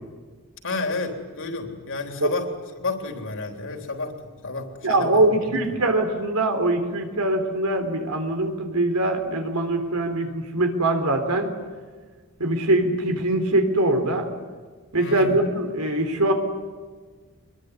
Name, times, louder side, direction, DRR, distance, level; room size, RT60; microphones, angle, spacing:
voice 1, 0.6-2.5 2.8-4.2 4.4-5.6 15.0-15.4, left 3 dB, 60° left, 4 dB, 3.6 m, -31 dB
voice 2, 4.8-11.5 12.4-14.3 14.9-16.3, right 1 dB, 80° right, 6 dB, 3.7 m, -22 dB
24.5 x 22.0 x 9.7 m, 1.5 s
head